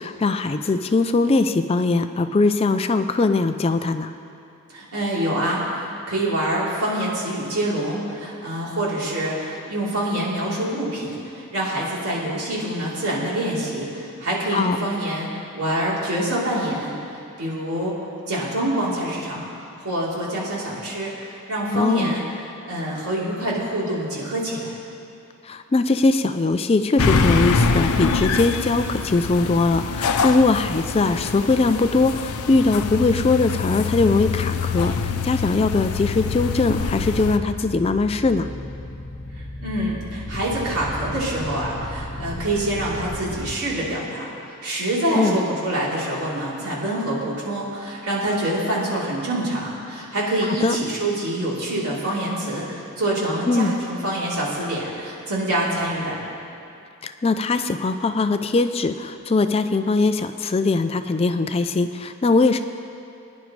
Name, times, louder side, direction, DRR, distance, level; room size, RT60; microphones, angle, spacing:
voice 1, 0.0-4.1 14.5-14.8 21.7-22.1 25.4-38.5 45.1-45.4 50.6-50.8 53.5-53.7 57.0-62.6, left 3 dB, 25° left, 9 dB, 0.3 m, -21 dB
voice 2, 4.7-5.8 6.1-15.3 15.5-17.9 18.3-22.2 22.6-24.8 39.3-56.2, right 1 dB, 90° right, -6 dB, 3.4 m, -26 dB
sound 1, 27.0-37.4, left 4 dB, 85° left, 0.6 m, -24 dB
sound 2, 36.0-43.6, left 1 dB, 65° left, 1.2 m, -34 dB
21.5 x 10.5 x 3.2 m, 2.6 s
head